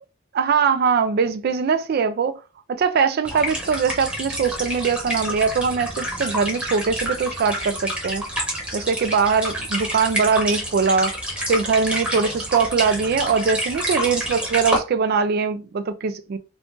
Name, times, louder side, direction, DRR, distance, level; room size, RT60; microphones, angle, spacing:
voice 1, 0.3-2.4 2.7-8.2 8.7-11.2 11.5-16.4, right 5 dB, 50° right, 0.3 m, -21 dB
sound 1, 3.2-14.8, equal, 5° right, 0.9 m, -28 dB
2.5 x 2.4 x 3.6 m
head